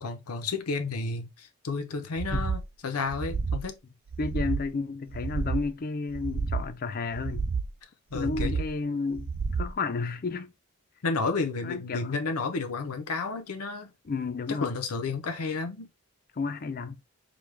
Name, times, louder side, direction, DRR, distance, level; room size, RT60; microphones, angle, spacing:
voice 1, 0.0-3.7 8.1-8.6 11.0-13.9 14.5-15.9, left 4 dB, 85° left, 0.7 m, -32 dB
sound 1, 2.2-2.7 3.1-3.7 4.1-4.7 5.1-5.7 6.1-6.7 7.1-7.7 8.1-8.7 9.1-9.7, right 4 dB, 45° right, 0.4 m, -31 dB
voice 2, 4.2-7.5 8.1-9.3 9.6-10.5 11.6-12.1 14.1-14.7 16.4-17.0, left 4 dB, 40° left, 0.5 m, -32 dB
5.0 x 2.3 x 3.2 m
head